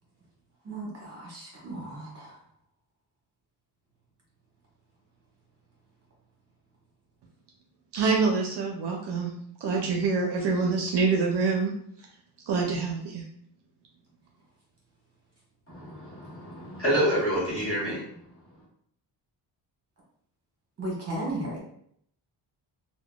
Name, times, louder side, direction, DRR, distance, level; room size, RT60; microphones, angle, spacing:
voice 1, 0.6-2.3 20.8-21.6, right 1 dB, 30° right, -4 dB, 1.1 m, -35 dB
voice 2, 7.9-9.3 9.6-11.7 12.5-13.2, right 4 dB, 60° right, 1 dB, 0.5 m, -26 dB
voice 3, 15.7-18.0, equal, 30° left, -7 dB, 1.4 m, -28 dB
3.7 x 2.1 x 2.3 m, 0.67 s
wide cardioid pair, 145°, 48 cm